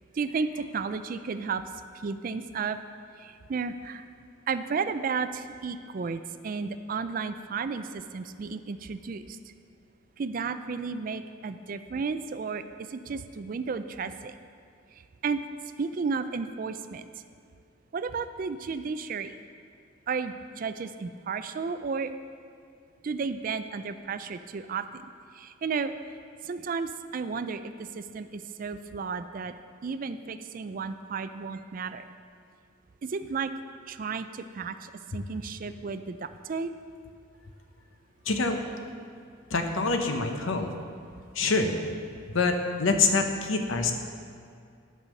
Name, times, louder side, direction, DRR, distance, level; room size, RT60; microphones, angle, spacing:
voice 1, 0.1-1.6 2.0-2.8 3.2-4.0 4.5-9.4 10.2-12.6 12.9-14.4 15.2-15.4 15.8-17.1 17.9-19.3 20.1-22.1 23.0-25.0 25.3-25.9 26.4-29.5 29.8-32.0 33.0-33.5 33.9-36.7, right 5 dB, 45° right, 11 dB, 0.3 m, -33 dB
voice 2, 38.3-38.6 39.5-40.7 41.3-41.7 42.3-43.9, left 4 dB, 75° left, 5 dB, 0.9 m, -25 dB
10.5 x 5.5 x 6.3 m, 2.3 s
head